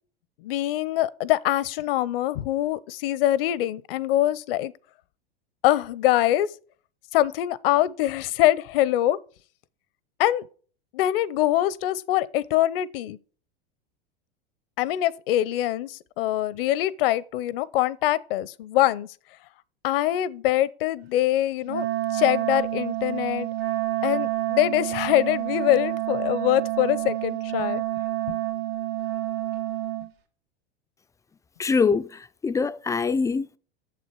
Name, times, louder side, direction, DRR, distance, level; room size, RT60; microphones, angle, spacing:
voice 1, 0.4-4.7 5.6-6.5 7.1-9.2 10.2-10.4 10.9-13.2 14.8-19.1 19.8-21.9 22.1-23.5 24.0-27.8 28.3-28.4, left 14 dB, 65° left, 0.7 m, -24 dB
Wind instrument woodwind instrument, 21.6-30.1, right 14 dB, 80° right, 2.4 m, -28 dB
voice 2, 31.6-33.6, left 5 dB, 10° left, 0.3 m, -24 dB
8.4 x 7.1 x 4.6 m
hypercardioid pair, 95°, 30 cm